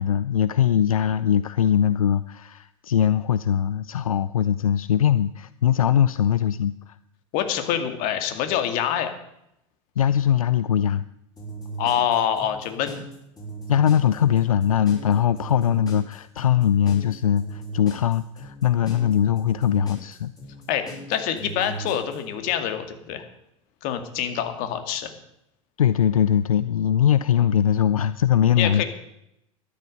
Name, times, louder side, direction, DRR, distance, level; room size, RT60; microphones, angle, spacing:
voice 1, 0.0-7.0 10.0-11.0 13.7-20.3 25.8-28.8, left 9 dB, 85° left, 15 dB, 0.5 m, -21 dB
voice 2, 7.3-9.1 11.8-13.0 20.7-23.2 23.8-25.1 28.6-28.8, left 9 dB, 50° left, 7 dB, 2.2 m, -25 dB
sound 1, 11.4-22.2, right 3 dB, 20° left, 6.3 m, -37 dB
13.0 x 11.0 x 6.6 m, 0.80 s
hypercardioid pair, 90°, 18 cm